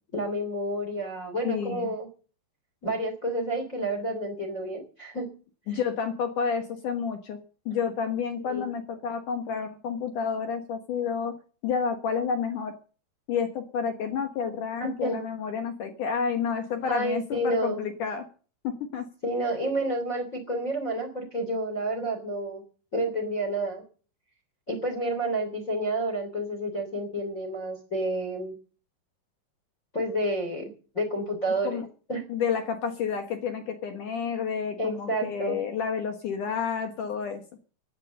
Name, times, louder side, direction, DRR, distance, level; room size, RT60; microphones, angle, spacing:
voice 1, 0.1-2.1 2.8-5.3 8.4-8.7 14.8-15.2 16.9-17.8 19.2-22.6 22.9-23.8 24.7-28.5 29.9-30.7 30.9-31.8 32.1-32.2 34.8-35.6, right 1 dB, 20° left, 6 dB, 2.5 m, -29 dB
voice 2, 1.4-1.9 5.7-7.4 7.7-11.3 11.6-12.7 13.3-18.3 18.6-19.1 31.6-31.9 32.3-37.4, left 6 dB, 75° left, 7 dB, 1.9 m, -30 dB
15.5 x 10.0 x 6.5 m, 0.39 s
omnidirectional pair, 5.6 m